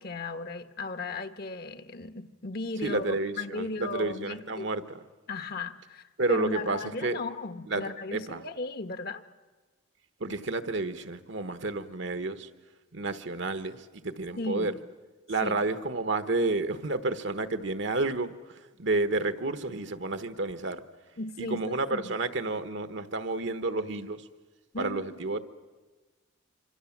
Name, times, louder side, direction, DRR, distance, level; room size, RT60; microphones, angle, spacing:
voice 1, 0.0-4.7 5.3-9.2 14.4-14.8 15.4-15.6 21.2-22.2 24.7-25.2, left 3 dB, 50° left, 9 dB, 1.2 m, -36 dB
voice 2, 2.8-5.0 6.2-7.2 7.7-7.8 8.1-8.4 10.2-12.5 12.9-14.7 15.3-20.8 21.4-24.2 24.8-25.4, right 2 dB, 65° right, 10 dB, 1.2 m, -30 dB
26.0 x 26.0 x 7.3 m, 1.3 s
head